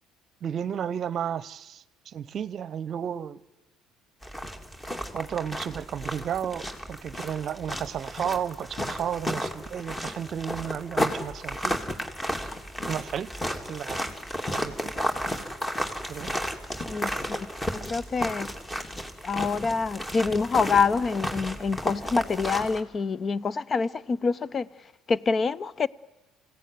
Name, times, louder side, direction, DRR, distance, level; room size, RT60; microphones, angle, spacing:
voice 1, 0.4-3.4 5.1-11.8 12.9-13.3 13.7-14.0 14.5-14.9 16.1-16.3, right 8 dB, 50° right, 0.7 m, -33 dB
sound 1, 4.2-22.8, equal, 15° left, 3.0 m, -33 dB
voice 2, 16.9-18.5 19.2-25.9, left 5 dB, 35° left, 0.7 m, -27 dB
27.0 x 17.0 x 9.4 m
hypercardioid pair, 65°, 0 cm